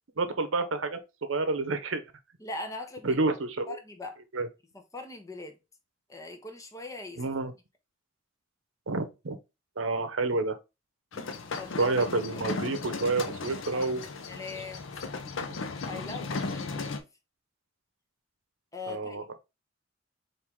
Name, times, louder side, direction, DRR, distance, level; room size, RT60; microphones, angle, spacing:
voice 1, 0.2-1.0 1.3-2.0 3.0-3.8 4.3-4.5 7.2-7.5 8.9-9.4 9.8-10.6 11.8-14.0 15.3-15.6 18.9-19.4, right 3 dB, 75° right, 0.7 m, -29 dB
voice 2, 2.4-3.2 3.7-4.2 4.9-5.6 6.1-7.2 11.1-11.9 13.7-15.0 15.9-17.1 18.7-19.2, left 3 dB, 15° left, 0.8 m, -41 dB
sound 1, 11.1-17.0, left 3 dB, 75° left, 0.6 m, -36 dB
4.5 x 2.6 x 3.5 m
head